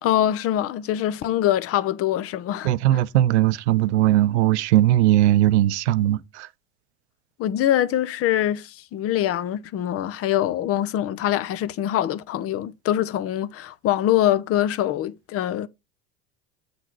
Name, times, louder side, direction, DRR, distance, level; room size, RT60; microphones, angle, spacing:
voice 1, 0.0-2.7 7.4-15.7, left 12 dB, 45° left, 0.8 m, -24 dB
voice 2, 2.6-6.5, right 14 dB, 85° right, 0.6 m, -19 dB
8.6 x 3.9 x 4.6 m
supercardioid pair, 95°, 33 cm